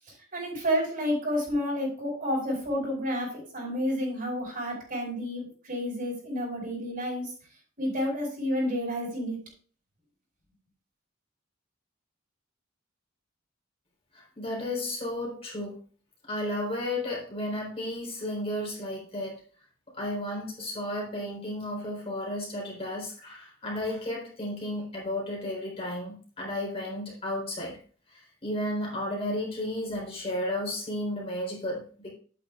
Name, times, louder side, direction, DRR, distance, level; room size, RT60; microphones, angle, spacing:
voice 1, 0.3-7.3 7.8-9.4, equal, 45° right, -2 dB, 5.3 m, -30 dB
voice 2, 14.1-15.8 16.2-19.4 19.9-27.8 28.1-32.1, left 1 dB, 30° left, -4 dB, 3.9 m, -33 dB
11.0 x 9.0 x 2.5 m, 0.42 s
head